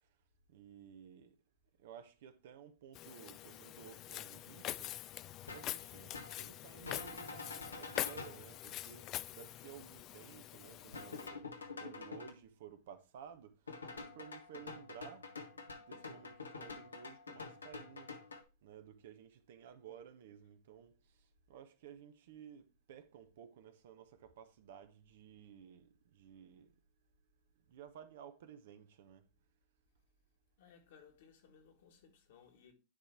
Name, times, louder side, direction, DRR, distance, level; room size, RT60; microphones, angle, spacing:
voice 1, 0.5-1.4 1.8-4.9 5.5-9.0 9.3-11.4 11.8-13.6 13.9-15.3 15.7-18.1 18.6-20.9 21.5-26.7 27.7-29.2, right 8 dB, 65° right, 0.9 m, -55 dB
Walk footsteps, 3.0-11.3, left 14 dB, 40° left, 0.3 m, -45 dB
sound 1, 5.5-5.7 6.1-6.4 6.8-8.4 10.9-12.3 13.7-18.4, left 4 dB, 85° left, 1.0 m, -47 dB
voice 2, 10.6-11.7 30.6-32.7, left 6 dB, 65° left, 1.8 m, -63 dB
9.7 x 3.3 x 4.5 m
hypercardioid pair, 100°, 0 cm